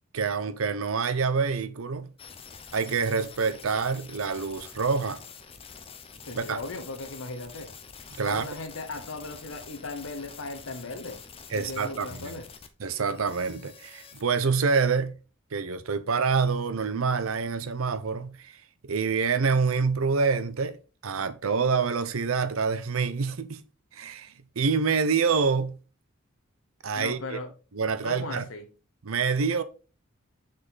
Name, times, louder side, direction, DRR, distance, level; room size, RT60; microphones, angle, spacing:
voice 1, 0.1-2.1 2.7-5.2 6.3-6.6 8.2-8.5 11.5-12.3 12.8-15.2 15.5-18.5 18.9-20.8 21.0-23.6 23.9-25.8 26.8-27.4 27.7-28.4 29.0-29.6, right 5 dB, 80° right, 0.6 m, -26 dB
sound 1, 2.2-14.3, left 6 dB, 25° left, 0.6 m, -47 dB
voice 2, 6.3-7.7 8.2-11.2 11.5-12.5 26.9-27.5 28.0-28.7, left 3 dB, 75° left, 0.9 m, -37 dB
6.4 x 3.9 x 4.0 m
head